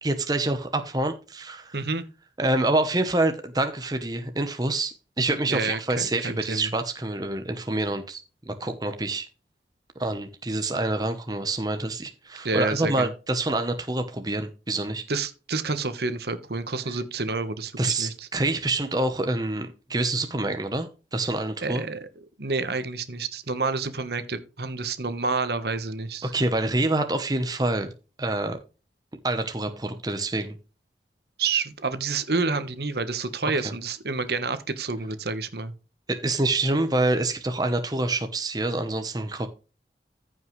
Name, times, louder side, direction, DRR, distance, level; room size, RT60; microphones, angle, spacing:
voice 1, 0.0-1.8 2.4-9.3 10.0-15.0 17.8-21.8 26.2-27.9 28.2-28.6 29.2-30.6 33.6-33.7 36.1-39.5, right 2 dB, 20° right, 0.9 m, -26 dB
voice 2, 1.7-2.0 5.5-5.8 6.2-6.7 12.4-13.1 15.1-18.3 21.6-22.1 22.4-26.3 31.4-35.7, right 4 dB, 65° right, 1.2 m, -29 dB
14.5 x 5.7 x 3.2 m
head